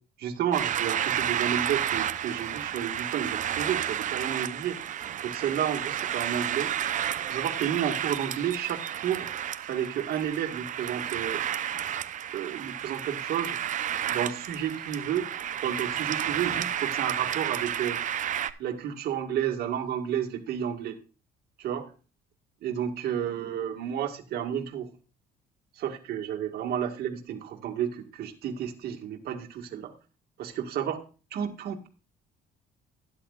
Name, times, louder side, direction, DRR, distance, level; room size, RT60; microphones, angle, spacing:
voice 1, 0.2-4.8 5.2-6.7 7.3-9.3 9.6-11.4 12.3-13.6 14.1-15.3 15.6-18.0 18.6-21.0 21.6-21.9 22.6-24.9 25.8-29.9 30.4-31.0 31.3-31.9, right 9 dB, 70° right, 5 dB, 1.9 m, -31 dB
sound 1, 0.5-18.5, right 10 dB, 50° right, 0.7 m, -31 dB
12.5 x 10.0 x 2.4 m, 0.34 s
cardioid pair, 110°, 17 cm